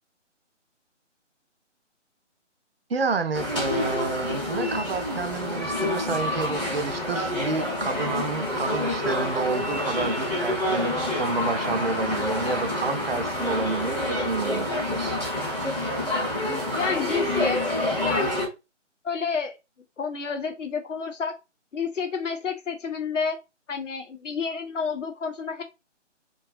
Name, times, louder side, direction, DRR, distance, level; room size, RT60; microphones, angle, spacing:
voice 1, 2.9-15.2, right 4 dB, 55° right, 0.5 m, -29 dB
sound 1, 3.3-18.5, left 1 dB, 5° left, 0.6 m, -27 dB
voice 2, 16.7-17.6 18.0-18.4 19.0-19.6 20.0-21.3 21.7-23.4 23.7-25.6, left 5 dB, 80° left, 0.8 m, -30 dB
2.6 x 2.3 x 2.4 m
figure-of-eight pair, 155°, 37 cm